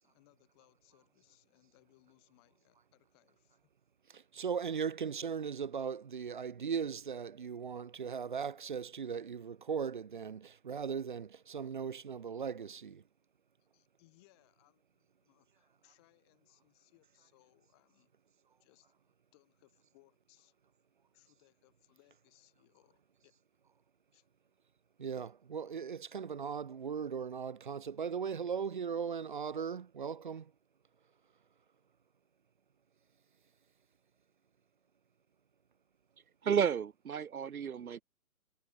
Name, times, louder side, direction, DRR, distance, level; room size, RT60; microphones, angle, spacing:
voice 1, 0.0-3.7 13.7-18.1 18.6-20.5 21.1-23.4 24.1-24.3, left 24 dB, 20° left, 6.4 m, -69 dB
voice 2, 4.1-13.0 25.0-30.4, right 6 dB, 35° right, 1.0 m, -38 dB
voice 3, 36.4-38.0, right 7 dB, 75° right, 1.0 m, -32 dB
hypercardioid pair, 170°, 44 cm